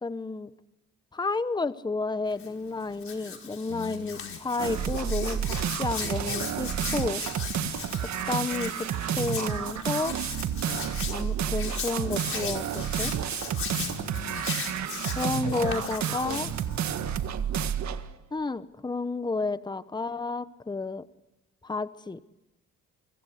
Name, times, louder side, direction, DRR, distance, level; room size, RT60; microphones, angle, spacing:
voice 1, 0.0-0.5 1.1-7.2 8.3-8.9 9.2-10.2 11.1-13.1 15.2-16.5 18.3-21.1 21.6-22.2, left 3 dB, 15° left, 14 dB, 1.0 m, -31 dB
Hands, 2.3-16.9, left 5 dB, 45° left, 5.2 m, -38 dB
voice 2, 3.7-4.4 7.6-7.9 10.6-11.0 13.7-14.6 15.0-15.9 16.2-17.3, left 12 dB, 90° left, 12 dB, 1.5 m, -42 dB
sound 1, 4.6-18.1, right 9 dB, 65° right, 1.7 m, -30 dB
28.5 x 24.5 x 8.2 m, 0.94 s
cardioid pair, 90°, 30 cm